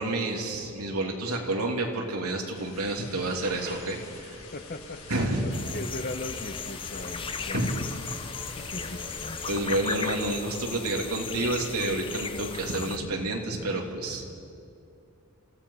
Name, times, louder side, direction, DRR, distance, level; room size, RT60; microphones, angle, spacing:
voice 1, 0.0-4.3 5.1-5.4 7.5-7.7 9.5-14.2, right 2 dB, 90° right, 0 dB, 3.2 m, -29 dB
sound 1, 1.8-1.9 2.4-4.2 6.6-6.7 7.1-10.1 10.8-11.3 12.4-12.6, right 2 dB, 55° right, 3.0 m, -47 dB
sound 2, 2.5-9.6, left 4 dB, 85° left, 5.9 m, -45 dB
voice 2, 4.5-5.0 5.4-7.7 8.6-9.4, left 2 dB, 45° left, 8 dB, 1.2 m, -38 dB
sound 3, 5.5-13.0, left 5 dB, 25° left, 0.7 m, -36 dB
27.5 x 17.0 x 5.8 m, 2.5 s
head